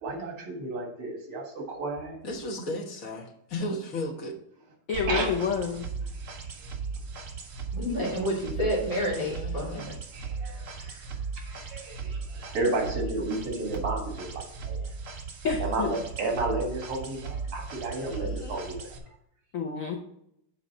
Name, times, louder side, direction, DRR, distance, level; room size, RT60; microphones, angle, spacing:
voice 1, 0.0-2.2 5.1-5.3 10.1-10.6 11.4-14.8 15.6-18.8, right 2 dB, 80° right, 1 dB, 2.7 m, -32 dB
voice 2, 2.2-4.3 9.1-9.8 17.9-18.7, left 1 dB, 45° left, 1 dB, 1.4 m, -35 dB
voice 3, 4.9-5.9 15.4-15.9 19.5-20.0, left 6 dB, 65° left, 1 dB, 0.8 m, -28 dB
sound 1, 4.9-19.0, right 5 dB, 60° right, 0.8 m, -37 dB
voice 4, 7.7-9.9 10.7-11.0, equal, 15° right, -7 dB, 2.5 m, -30 dB
7.7 x 4.0 x 5.4 m, 0.74 s
omnidirectional pair, 2.4 m